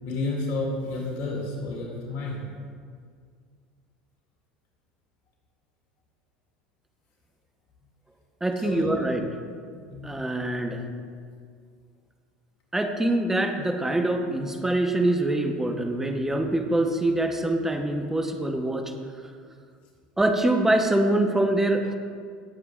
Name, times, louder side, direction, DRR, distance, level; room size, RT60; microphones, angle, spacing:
voice 1, 0.0-2.5 8.6-9.0 9.9-10.3, left 2 dB, 60° left, -2 dB, 2.5 m, -31 dB
voice 2, 8.4-9.2 10.0-10.8 12.7-18.9 20.2-21.9, right 1 dB, 10° right, 4 dB, 1.1 m, -24 dB
16.5 x 7.8 x 2.5 m, 2.1 s
hypercardioid pair, 80°, 4 cm